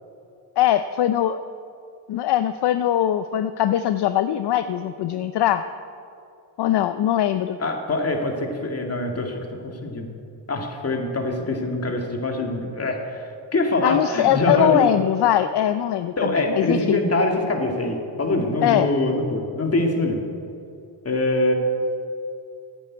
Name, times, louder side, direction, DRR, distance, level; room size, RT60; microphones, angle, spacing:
voice 1, 0.6-1.4 2.1-5.6 6.6-7.6 13.8-17.0 18.6-18.9, left 11 dB, 65° left, 11 dB, 0.6 m, -21 dB
voice 2, 7.6-9.4 9.6-10.1 10.5-14.9 16.2-20.2 21.0-21.5, left 2 dB, 35° left, 2 dB, 2.3 m, -24 dB
11.0 x 9.1 x 8.4 m, 2.6 s
cardioid pair, 75°, 44 cm